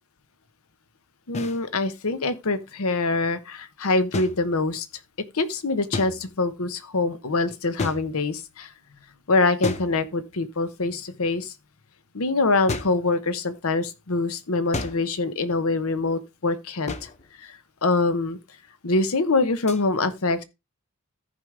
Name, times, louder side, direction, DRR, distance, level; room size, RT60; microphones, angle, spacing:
voice 1, 1.3-4.9 5.3-8.7 9.3-11.5 12.1-17.1 17.4-18.4 18.8-20.4, left 3 dB, 70° left, 0.9 m, -24 dB
sound 1, 1.3-1.6 4.1-5.0 5.9-6.5 7.8-8.5 9.6-10.5 12.7-13.1 14.7-15.2 16.9-17.3 19.7-19.8, left 3 dB, 30° left, 0.7 m, -33 dB
14.0 x 5.1 x 3.3 m
head